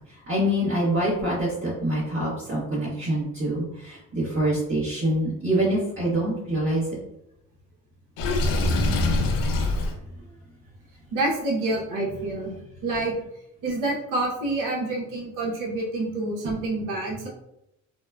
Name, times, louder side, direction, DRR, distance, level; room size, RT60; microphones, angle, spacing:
voice 1, 0.3-6.8, right 1 dB, 35° right, -9 dB, 1.1 m, -25 dB
Water / Sink (filling or washing), 8.2-9.9, left 2 dB, 70° left, 0.6 m, -23 dB
voice 2, 11.1-12.5 12.8-13.1 13.6-17.3, right 2 dB, 65° right, -3 dB, 1.0 m, -27 dB
2.8 x 2.1 x 2.3 m, 0.84 s
supercardioid pair, 75°, 35 cm